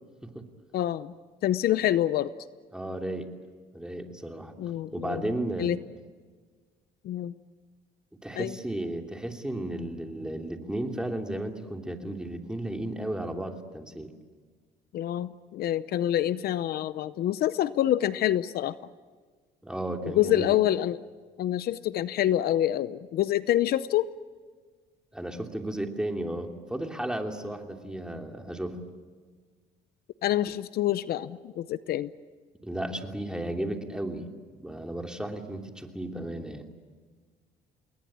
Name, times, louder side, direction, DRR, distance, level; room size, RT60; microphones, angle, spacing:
voice 1, 0.7-1.1 1.4-2.3 4.6-5.2 5.6-5.8 7.0-7.3 8.3-8.6 14.9-18.8 20.0-21.0 21.4-24.1 30.2-32.1, left 12 dB, 65° left, 15 dB, 0.8 m, -26 dB
voice 2, 2.7-3.3 3.7-4.5 4.9-5.7 8.2-14.1 19.6-20.6 25.1-28.9 32.6-34.3 34.6-36.6, right 1 dB, 5° right, 3 dB, 2.9 m, -34 dB
29.0 x 20.5 x 8.8 m, 1.5 s
cardioid pair, 110°, 17 cm